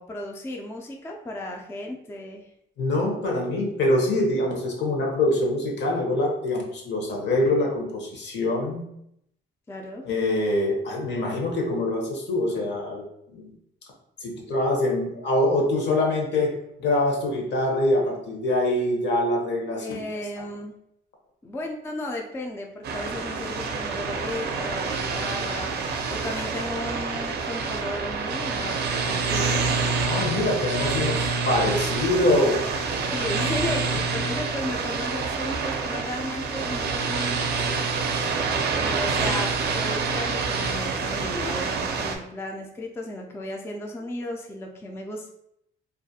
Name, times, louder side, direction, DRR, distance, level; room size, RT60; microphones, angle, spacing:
voice 1, 0.0-2.5 9.7-10.0 19.8-20.7 21.4-25.7 26.1-28.8 29.0-29.7 30.8-31.3 33.0-37.4 38.7-45.3, left 1 dB, 15° left, 2 dB, 0.3 m, -34 dB
voice 2, 2.8-8.8 10.0-13.5 14.2-20.0 30.0-31.2 31.4-33.0 38.2-38.3, left 1 dB, 65° left, 0 dB, 0.8 m, -24 dB
sound 1, 22.8-42.2, right 4 dB, 55° right, 0.4 m, -27 dB
2.4 x 2.2 x 2.7 m, 0.77 s
cardioid pair, 90°, 20 cm